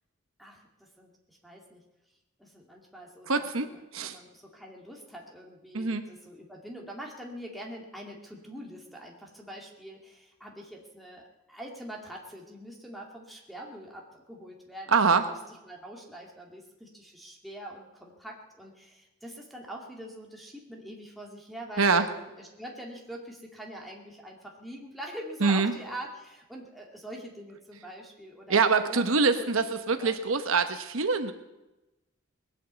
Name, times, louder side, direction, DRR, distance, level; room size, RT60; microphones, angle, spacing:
voice 1, 0.4-1.8 2.4-15.4 15.6-30.2, right 1 dB, ahead, 0 dB, 2.3 m, -44 dB
voice 2, 3.3-3.7 3.9-4.2 5.7-6.1 14.9-15.3 21.8-22.0 25.4-25.7 28.5-31.3, right 4 dB, 70° right, 8 dB, 1.0 m, -24 dB
20.0 x 8.4 x 8.1 m, 1.0 s
head